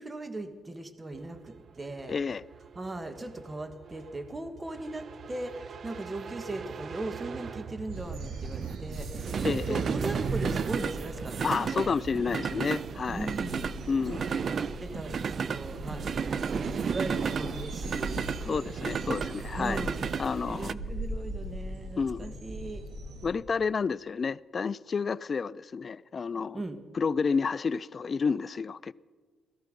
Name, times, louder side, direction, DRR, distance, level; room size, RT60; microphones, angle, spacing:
voice 1, 0.0-2.2 2.7-12.0 13.1-13.7 14.5-18.6 19.5-22.8 26.5-26.8, right 2 dB, 25° right, 1.6 m, -39 dB
sound 1, 1.2-20.7, right 6 dB, 55° right, 0.4 m, -34 dB
voice 2, 2.1-2.4 9.4-9.8 11.4-13.3 13.9-14.3 18.5-19.8 20.2-20.8 22.0-22.3 23.2-26.6 26.9-28.9, left 5 dB, 45° left, 0.4 m, -30 dB
sound 2, 7.9-23.3, right 1 dB, 80° right, 2.1 m, -40 dB
17.5 x 14.0 x 5.3 m
cardioid pair, 80°, 0 cm